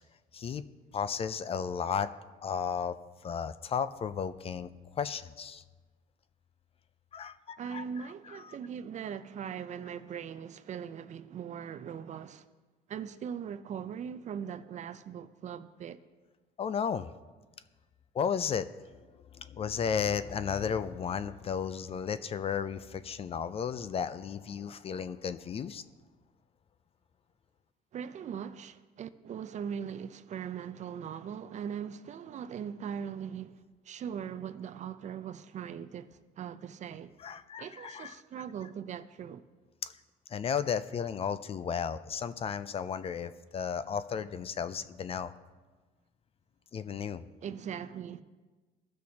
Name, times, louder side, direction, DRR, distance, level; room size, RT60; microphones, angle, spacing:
voice 1, 0.9-2.1 2.4-3.0 3.2-5.6 7.1-8.6 16.6-17.1 18.1-18.7 19.3-25.8 37.2-38.1 39.8-39.9 40.3-45.3 46.7-47.2, left 7 dB, 35° left, 0.4 m, -34 dB
voice 2, 7.6-12.5 12.9-16.0 27.9-33.6 33.9-37.1 37.6-39.4 47.4-48.2, right 8 dB, 45° right, 0.4 m, -40 dB
15.5 x 6.3 x 2.8 m
cardioid pair, 110°, 17 cm